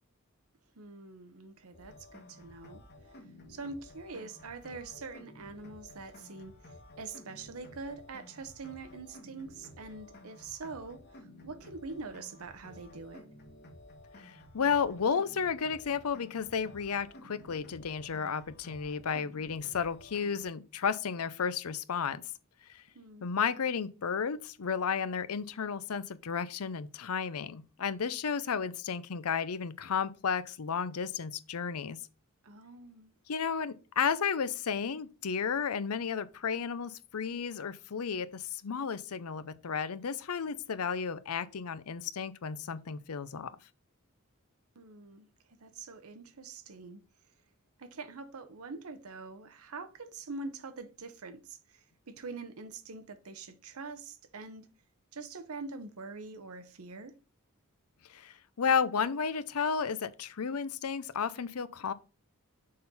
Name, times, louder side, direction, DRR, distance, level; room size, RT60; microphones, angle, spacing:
voice 1, 0.8-2.8 3.5-6.6 7.0-11.0 11.4-13.3 22.9-23.3 32.4-33.1 44.8-47.0 47.8-54.7 55.1-57.1, right 3 dB, 75° right, 0.8 m, -44 dB
sound 1, 1.7-20.4, left 1 dB, 50° left, 1.6 m, -53 dB
voice 2, 14.2-22.2 22.7-22.8 23.2-32.0 33.3-43.5 58.1-61.9, left 6 dB, 85° left, 0.6 m, -33 dB
6.5 x 3.8 x 4.1 m
head